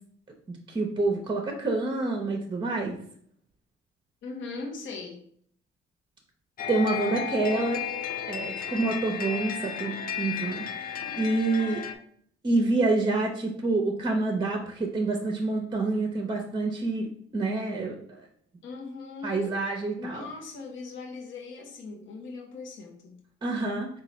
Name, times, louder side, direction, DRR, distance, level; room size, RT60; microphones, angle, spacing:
voice 1, 0.5-2.9 6.7-7.8 8.3-11.8 12.4-17.1 17.3-17.9 19.2-20.3 23.4-23.9, right 3 dB, 25° right, 1 dB, 0.7 m, -27 dB
voice 2, 4.2-5.2 18.6-19.6 20.0-23.2, left 4 dB, 75° left, 0 dB, 0.8 m, -39 dB
sound 1, 6.6-11.9, left 7 dB, 45° left, 0.4 m, -34 dB
3.9 x 2.3 x 4.2 m, 0.63 s
cardioid pair, 90°, 20 cm